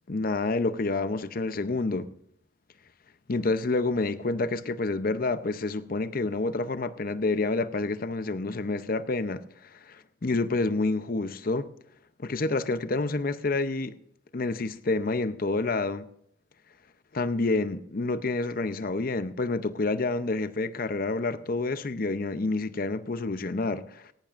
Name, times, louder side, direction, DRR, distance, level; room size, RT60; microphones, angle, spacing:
voice 1, 0.1-2.1 3.3-11.7 12.2-13.9 14.3-16.1 17.1-24.1, left 3 dB, 45° left, 0.6 m, -28 dB
18.0 x 17.0 x 2.5 m
head